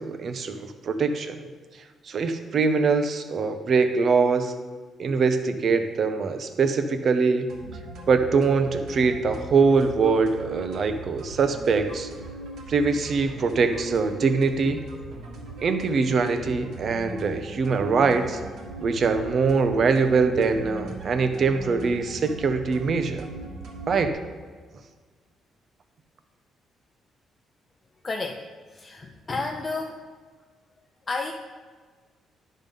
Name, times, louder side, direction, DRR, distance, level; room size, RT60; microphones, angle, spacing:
voice 1, 0.0-1.3 2.1-4.5 5.0-7.5 8.1-12.1 12.7-14.8 15.6-18.4 18.8-23.2 23.9-24.2, right 4 dB, 55° right, 8 dB, 0.7 m, -23 dB
sound 1, 7.5-24.1, right 2 dB, 80° right, 1.8 m, -40 dB
voice 2, 28.0-28.4 28.7-30.0 31.1-31.3, left 3 dB, 30° left, 1 dB, 0.6 m, -31 dB
11.0 x 3.7 x 5.3 m, 1.5 s
cardioid pair, 90°, 0 cm